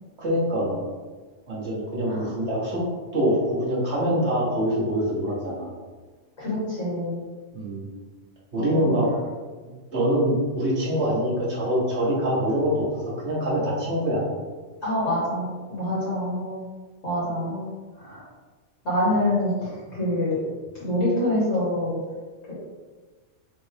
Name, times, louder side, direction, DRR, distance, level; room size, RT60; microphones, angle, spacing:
voice 1, 0.2-0.8 1.5-2.8 3.1-5.7 7.5-7.8 8.5-9.1 9.9-14.2, equal, 60° right, -6 dB, 1.6 m, -24 dB
voice 2, 6.4-7.2 8.5-8.9 14.8-16.6 17.0-17.7 18.0-18.2 18.8-20.4 20.8-22.0, left 1 dB, 85° left, -8 dB, 1.7 m, -26 dB
4.1 x 3.4 x 3.4 m, 1.4 s
omnidirectional pair, 1.3 m